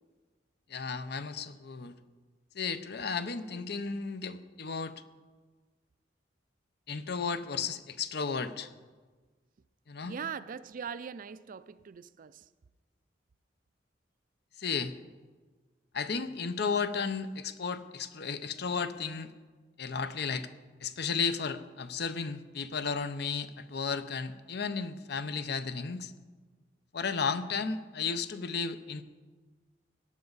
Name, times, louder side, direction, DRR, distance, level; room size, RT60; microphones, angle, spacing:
voice 1, 0.7-2.0 2.5-4.9 6.9-8.7 9.9-10.2 14.6-14.9 15.9-19.3 19.8-20.5 20.8-26.1 26.9-29.0, left 5 dB, 65° left, 0.7 m, -34 dB
voice 2, 10.0-12.4, right 6 dB, 50° right, 0.4 m, -41 dB
18.0 x 11.0 x 4.0 m
head